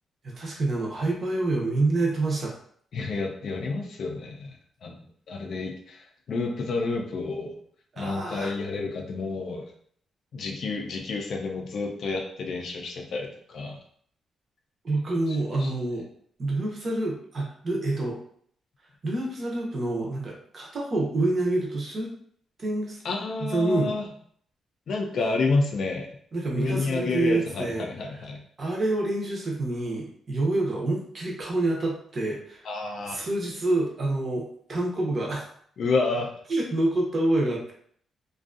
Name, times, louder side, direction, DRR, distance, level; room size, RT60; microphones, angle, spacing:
voice 1, 0.2-2.5 7.9-8.5 14.8-16.1 16.4-18.2 19.0-22.1 22.6-23.0 23.4-23.9 26.3-27.9 28.1-28.2 28.6-32.7 33.1-35.4 36.5-37.7, right 2 dB, 35° right, -2 dB, 0.6 m, -27 dB
voice 2, 2.9-4.5 4.8-5.0 5.3-7.6 8.0-9.7 10.3-13.8 15.3-15.7 23.0-24.1 24.9-26.1 26.5-28.4 32.7-33.2 35.8-36.3, left 3 dB, 55° left, 2 dB, 0.4 m, -29 dB
2.5 x 2.3 x 2.4 m, 0.62 s
wide cardioid pair, 170°, 0 cm